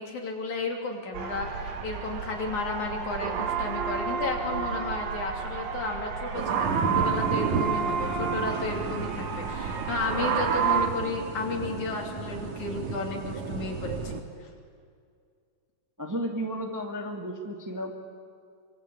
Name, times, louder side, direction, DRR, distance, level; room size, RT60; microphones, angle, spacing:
voice 1, 0.0-14.5, left 3 dB, 60° left, 1 dB, 4.3 m, -33 dB
sound 1, 1.1-10.9, right 6 dB, 90° right, 3.6 m, -30 dB
sound 2, 6.3-14.2, right 5 dB, 60° right, 2.9 m, -33 dB
voice 2, 16.0-17.9, equal, 5° right, 1 dB, 1.6 m, -33 dB
26.0 x 25.0 x 8.6 m, 2.2 s
omnidirectional pair, 3.9 m